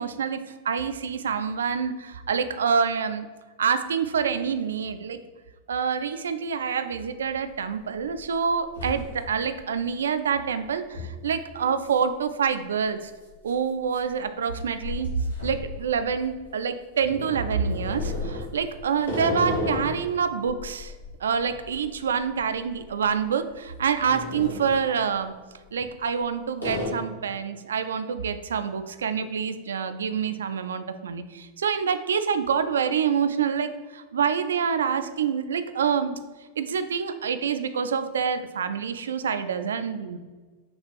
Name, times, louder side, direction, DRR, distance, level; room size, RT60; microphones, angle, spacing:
voice 1, 0.0-3.3 3.6-5.2 5.7-13.1 13.4-15.1 15.4-20.9 21.2-25.3 25.7-36.2 36.6-40.2, right 6 dB, 65° right, 10 dB, 0.3 m, -27 dB
sound 1, 7.2-7.3 7.8-8.2 8.5-9.5 9.9-10.0 10.9-11.2 11.8-12.0 12.3-12.4 13.3-16.4 17.0-20.1 20.5-22.8 23.1-23.3 23.8-24.8 25.7-26.2 26.6-26.9, left 2 dB, 85° left, 1.4 m, -34 dB
6.0 x 2.4 x 3.2 m, 1.4 s
figure-of-eight pair, 90°, 0 cm